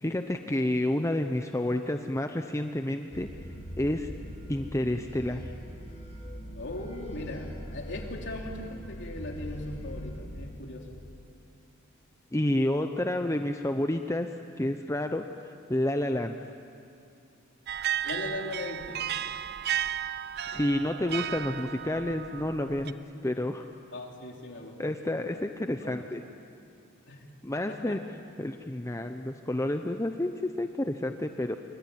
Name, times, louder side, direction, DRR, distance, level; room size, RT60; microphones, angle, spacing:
voice 1, 0.0-3.3 3.8-4.1 4.5-5.5 12.3-14.3 14.6-15.2 15.7-16.3 20.4-23.0 23.2-23.6 24.8-26.2 27.4-28.0 28.4-31.6, left 1 dB, 15° left, 6 dB, 0.8 m, -29 dB
sound 1, 3.1-10.2, equal, 35° left, 4.5 m, -41 dB
voice 2, 6.6-10.9 18.0-19.0 23.9-25.3 25.8-26.1 27.1-27.3 27.5-28.0, left 2 dB, 60° left, 1 dB, 3.6 m, -39 dB
sound 2, 17.7-22.9, right 10 dB, 50° right, 0.6 m, -34 dB
26.5 x 24.0 x 9.4 m, 2.5 s
head